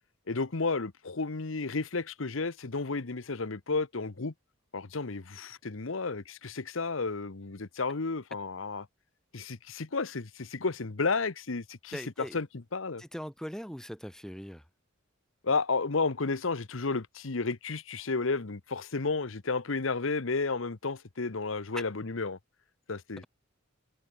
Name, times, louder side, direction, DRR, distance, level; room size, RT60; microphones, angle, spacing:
voice 1, 0.3-4.3 4.7-8.9 9.3-12.0 12.3-12.5 12.7-13.0 15.4-22.4 22.9-23.2, left 4 dB, 70° left, 1.0 m, -32 dB
voice 2, 11.9-12.4 13.0-14.7 21.7-21.8, equal, 5° left, 2.1 m, -40 dB
head